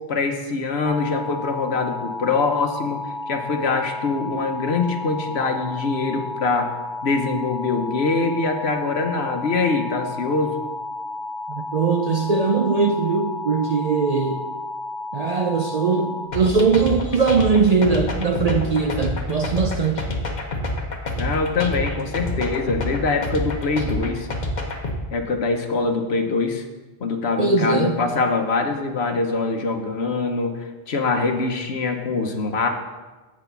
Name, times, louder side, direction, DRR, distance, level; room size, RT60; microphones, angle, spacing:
voice 1, 0.1-3.0 3.3-6.7 7.0-10.6 21.2-24.3 25.1-26.7 27.0-32.7, left 4 dB, 70° left, 5 dB, 1.1 m, -23 dB
sound 1, 0.8-16.3, left 2 dB, 25° right, 0.9 m, -32 dB
voice 2, 11.5-14.4 15.1-20.1 27.4-28.0, right 4 dB, 50° right, 4 dB, 0.5 m, -20 dB
sound 2, 16.3-25.0, left 1 dB, 45° left, 1.0 m, -27 dB
7.9 x 4.9 x 7.0 m, 1.2 s
omnidirectional pair, 1.1 m